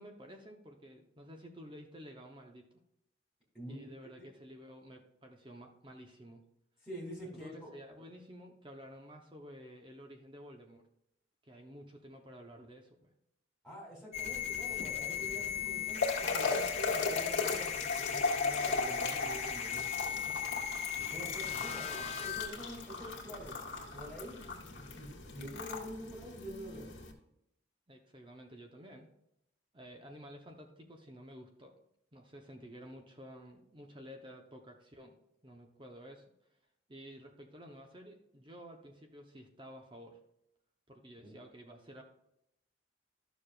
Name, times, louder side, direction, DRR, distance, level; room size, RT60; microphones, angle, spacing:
voice 1, 0.0-2.7 3.7-6.5 7.4-10.9 11.4-13.1 27.9-29.1 29.7-31.8 32.1-35.2 35.4-36.2 36.9-40.2 40.9-42.0, equal, 25° right, 3 dB, 1.0 m, -52 dB
voice 2, 3.5-4.1 6.8-7.7 13.6-20.4 21.0-23.5 23.9-26.9 41.2-41.3, equal, ahead, -5 dB, 3.1 m, -47 dB
extreme feedback, 14.1-22.5, left 9 dB, 35° left, 0.9 m, -38 dB
sound 1, 14.2-27.1, left 4 dB, 70° left, 1.9 m, -37 dB
12.5 x 6.7 x 2.5 m, 0.80 s
head